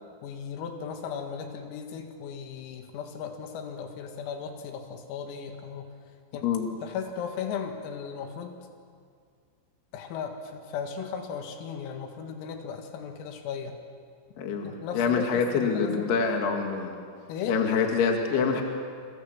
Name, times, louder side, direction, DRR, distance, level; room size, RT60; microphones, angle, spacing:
voice 1, 0.2-5.9 6.3-6.5 6.8-8.6 9.9-13.8 14.6-16.1 17.3-17.6, left 6 dB, 90° left, 4 dB, 4.5 m, -36 dB
voice 2, 14.4-17.0 17.5-18.6, left 5 dB, 60° left, 3 dB, 3.7 m, -26 dB
29.0 x 26.0 x 7.4 m, 2.1 s
omnidirectional pair, 5.9 m